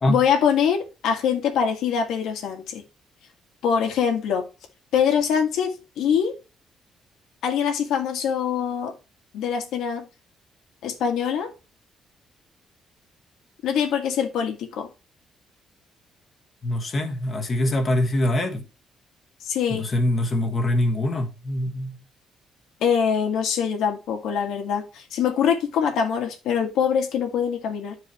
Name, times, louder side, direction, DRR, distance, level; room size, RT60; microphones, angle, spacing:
voice 1, 0.1-2.8 3.6-4.5 4.9-6.3 7.4-8.9 9.3-10.1 10.8-11.5 13.6-14.9 19.4-19.8 22.8-28.0, left 7 dB, 85° left, 1.8 m, -23 dB
voice 2, 16.6-18.6 19.7-22.0, left 1 dB, 40° left, 1.5 m, -24 dB
10.5 x 4.7 x 3.0 m
cardioid pair, 90°, 0 cm